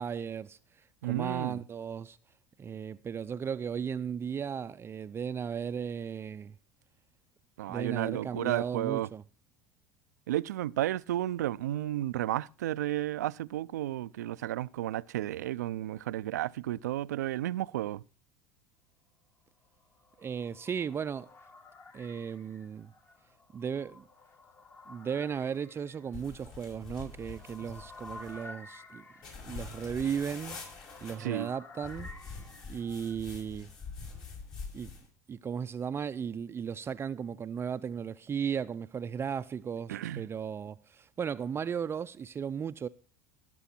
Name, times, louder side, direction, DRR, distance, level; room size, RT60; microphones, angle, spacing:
voice 1, 0.0-2.2 2.6-6.6 7.7-9.2 20.2-21.3 21.9-22.9 23.5-24.0 24.9-29.0 29.4-30.6 31.0-32.1 32.7-33.7 34.7-34.9 35.3-42.9, right 7 dB, 25° right, 0.5 m, -36 dB
voice 2, 1.0-1.6 7.6-9.1 10.3-18.0 31.2-31.5 39.9-40.2, right 14 dB, 85° right, 0.5 m, -32 dB
sound 1, 19.7-33.2, left 2 dB, 25° left, 1.5 m, -52 dB
sound 2, 26.1-28.4 29.2-31.1 31.8-35.1, left 4 dB, 50° left, 6.3 m, -45 dB
18.0 x 6.9 x 4.3 m
hypercardioid pair, 85°, 9 cm